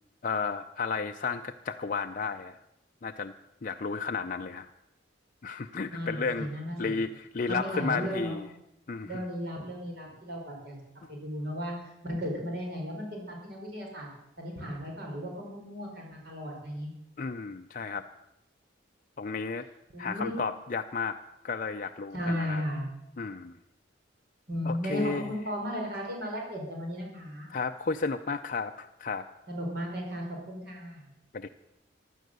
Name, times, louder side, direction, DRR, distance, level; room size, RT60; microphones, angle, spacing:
voice 1, 0.2-2.6 3.0-3.3 3.6-4.7 5.4-6.5 6.8-8.5 8.9-9.2 17.2-18.0 19.2-19.7 20.0-22.6 23.2-23.5 24.6-25.3 27.5-29.3 31.3-31.5, left 4 dB, 45° left, 6 dB, 0.5 m, -33 dB
voice 2, 5.9-7.0 7.5-8.4 9.0-10.7 11.1-11.7 12.0-14.1 14.4-16.9 19.9-20.3 22.1-22.8 24.5-27.5 29.5-31.1, equal, 55° right, 0 dB, 4.7 m, -35 dB
15.5 x 12.0 x 6.7 m, 0.86 s
head